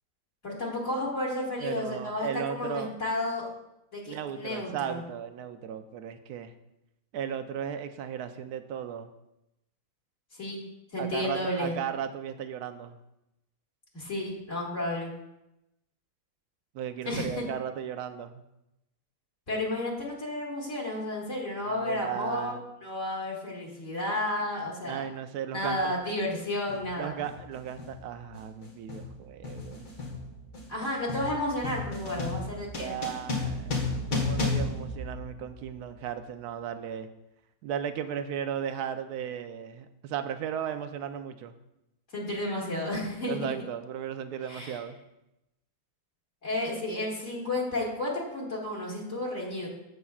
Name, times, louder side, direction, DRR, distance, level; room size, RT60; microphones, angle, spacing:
voice 1, 0.4-3.5 3.9-5.0 10.4-10.6 10.9-11.7 13.9-15.1 17.1-17.4 19.5-22.5 22.8-25.0 25.5-27.1 30.7-33.0 33.3-33.4 42.1-43.5 44.5-44.8 46.4-49.7, left 1 dB, 50° left, -4 dB, 2.3 m, -32 dB
voice 2, 1.6-2.9 4.1-6.5 7.1-9.1 11.0-13.0 16.7-18.4 21.7-22.6 24.8-25.9 27.0-29.9 32.7-33.7 34.1-37.1 37.6-41.5 43.3-45.0, right 8 dB, 85° right, 9 dB, 1.2 m, -36 dB
sound 1, 25.6-25.8 26.7-27.0 27.2-35.8, left 3 dB, 75° left, 2.0 m, -34 dB
14.5 x 5.6 x 2.4 m, 0.88 s
omnidirectional pair, 1.6 m